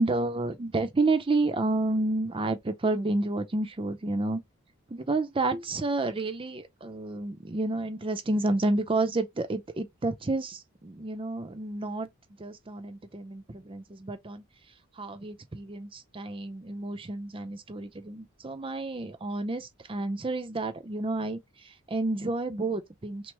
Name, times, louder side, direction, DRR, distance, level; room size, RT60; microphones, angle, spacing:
voice 1, 0.0-4.4 4.9-12.1 12.4-14.4 15.0-23.3, right 2 dB, 25° right, 0.5 m, -30 dB
6.0 x 2.0 x 3.3 m
head